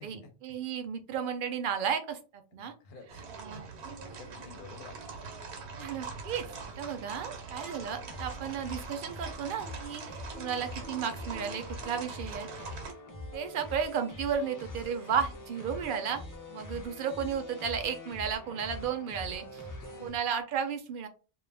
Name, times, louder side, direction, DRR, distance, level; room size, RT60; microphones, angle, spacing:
voice 1, 0.0-2.7 3.4-3.6 5.8-6.5 6.8-12.9 13.3-16.2 16.5-19.6 20.0-21.1, right 7 dB, 60° right, 8 dB, 0.6 m, -34 dB
voice 2, 2.5-3.3 4.0-5.2 19.6-20.2, left 4 dB, 60° left, 6 dB, 0.8 m, -51 dB
sound 1, 3.1-12.9, right 4 dB, 85° right, 1.0 m, -43 dB
sound 2, 8.1-20.1, left 2 dB, 30° left, 0.3 m, -44 dB
2.3 x 2.1 x 3.2 m, 0.35 s
omnidirectional pair, 1.1 m